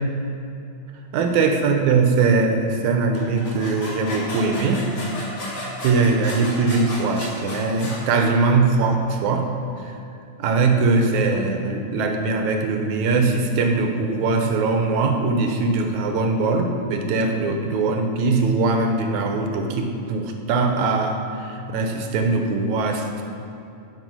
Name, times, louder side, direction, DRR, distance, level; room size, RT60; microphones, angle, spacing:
voice 1, 1.1-4.9 5.5-9.5 9.8-10.0 10.4-23.2, right 3 dB, 75° right, 4 dB, 2.2 m, -21 dB
sound 1, 3.1-8.0, left 1 dB, 50° left, 3.9 m, -33 dB
15.0 x 5.8 x 6.2 m, 2.7 s
omnidirectional pair, 3.6 m